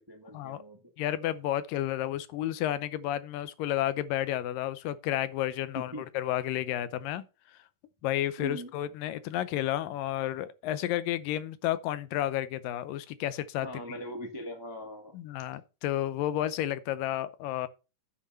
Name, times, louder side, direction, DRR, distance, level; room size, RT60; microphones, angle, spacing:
voice 1, 0.0-0.9 5.7-6.1 8.4-8.7 13.6-15.2, equal, 30° right, 0.4 m, -41 dB
voice 2, 1.0-7.2 8.0-13.8 15.1-17.7, left 12 dB, 85° left, 2.5 m, -31 dB
9.7 x 6.2 x 5.3 m
omnidirectional pair, 3.8 m